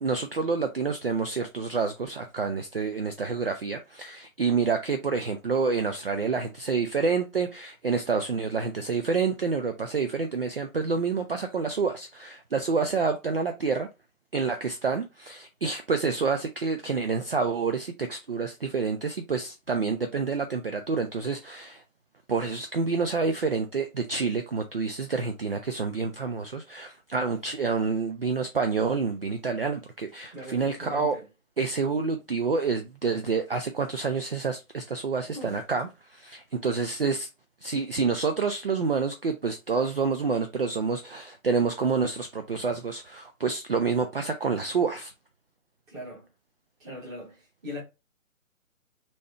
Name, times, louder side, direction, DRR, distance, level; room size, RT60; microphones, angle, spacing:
voice 1, 0.0-13.9 14.3-21.8 22.3-31.2 31.6-37.3 37.6-45.1, right 5 dB, 45° right, 0.4 m, -28 dB
voice 2, 30.3-31.3 35.3-35.6 45.9-46.3 46.8-47.8, left 1 dB, 10° right, 1.1 m, -40 dB
3.1 x 2.8 x 4.2 m
figure-of-eight pair, 140°, 42 cm